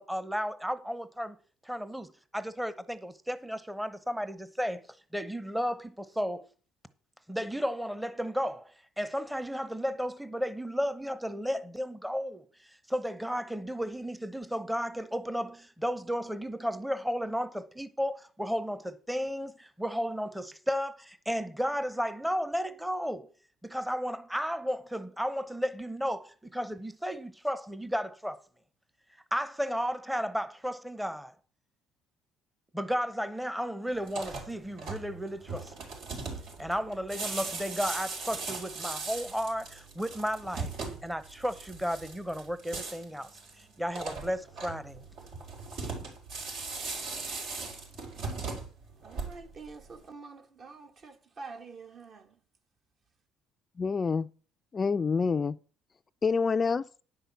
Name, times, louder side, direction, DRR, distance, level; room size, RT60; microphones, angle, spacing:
voice 1, 0.0-1.4 1.6-4.8 5.1-6.5 7.3-23.3 23.6-28.4 29.3-31.3 32.7-35.9 36.6-40.7 41.0-43.3 43.6-45.0 45.8-45.9, equal, 5° right, 0.9 m, -33 dB
sound 1, 34.0-49.7, right 4 dB, 75° right, 4.7 m, -39 dB
voice 2, 49.0-52.4, right 4 dB, 50° right, 1.7 m, -47 dB
voice 3, 53.8-54.3 54.7-55.6 56.2-56.9, left 5 dB, 30° left, 0.4 m, -27 dB
10.0 x 5.7 x 7.1 m
supercardioid pair, 85°, 0 cm